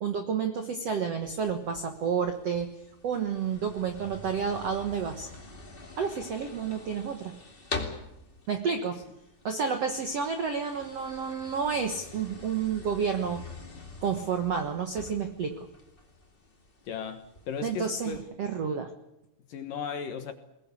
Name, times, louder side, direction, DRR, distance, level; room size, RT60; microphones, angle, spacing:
voice 1, 0.0-2.7 3.0-5.3 6.0-7.4 8.5-9.0 9.4-13.4 14.0-15.7 17.6-18.9, right 6 dB, 80° right, 1.4 m, -30 dB
sound 1, 1.2-18.2, left 3 dB, 20° left, 1.4 m, -45 dB
voice 2, 16.8-18.2 19.5-20.3, left 7 dB, 60° left, 2.6 m, -36 dB
22.0 x 19.5 x 8.4 m
omnidirectional pair, 5.1 m